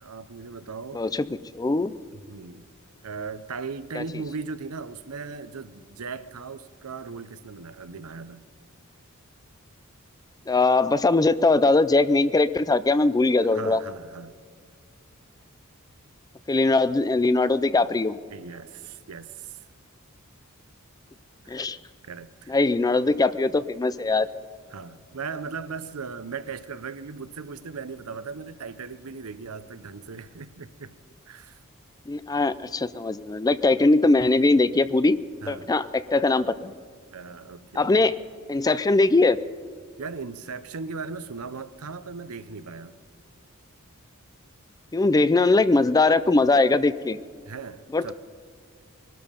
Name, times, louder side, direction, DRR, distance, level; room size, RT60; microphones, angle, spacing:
voice 1, 0.0-1.0 2.1-2.7 3.0-8.4 13.5-14.3 18.3-19.6 21.4-21.7 22.0-22.5 24.7-30.9 31.3-31.6 35.4-35.7 37.1-38.1 40.0-43.0 47.5-48.1, right 5 dB, 80° right, 0.7 m, -38 dB
voice 2, 0.9-1.3 1.5-1.9 4.0-4.1 10.5-13.8 16.5-18.2 21.5-21.8 22.5-24.3 32.1-35.2 35.5-36.7 37.8-38.2 38.5-39.4 44.9-47.2 47.9-48.1, left 3 dB, 15° left, 0.4 m, -21 dB
21.5 x 12.5 x 5.2 m
head